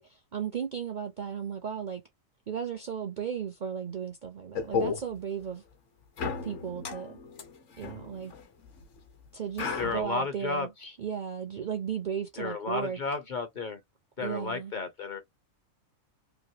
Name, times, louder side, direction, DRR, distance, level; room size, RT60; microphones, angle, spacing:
voice 1, 0.0-2.0 2.5-5.6 6.4-7.2 7.8-8.3 9.3-10.7 11.0-13.0 14.2-14.7, right 7 dB, 55° right, 0.5 m, -35 dB
sound 1, 4.5-5.0 6.2-8.8 9.6-10.0, left 5 dB, 65° left, 1.2 m, -34 dB
voice 2, 9.8-11.0 12.4-13.8 14.2-15.2, left 4 dB, 45° left, 0.7 m, -33 dB
3.1 x 2.6 x 2.7 m
omnidirectional pair, 1.4 m